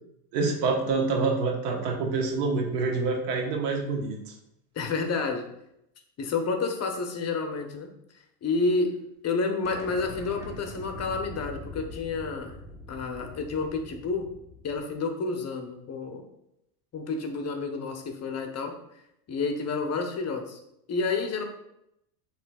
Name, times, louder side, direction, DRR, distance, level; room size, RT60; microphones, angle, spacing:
voice 1, 0.3-4.2, right 4 dB, 80° right, 1 dB, 1.3 m, -26 dB
voice 2, 4.7-5.5 6.2-7.9 8.4-9.0 9.2-12.6 12.9-14.3 14.6-16.2 16.9-18.7 19.3-20.6 20.9-21.4, left 4 dB, 30° left, 4 dB, 0.8 m, -29 dB
sound 1, 9.6-15.0, left 1 dB, 5° right, 0.9 m, -43 dB
7.6 x 3.0 x 2.3 m, 0.80 s
supercardioid pair, 100°, 49 cm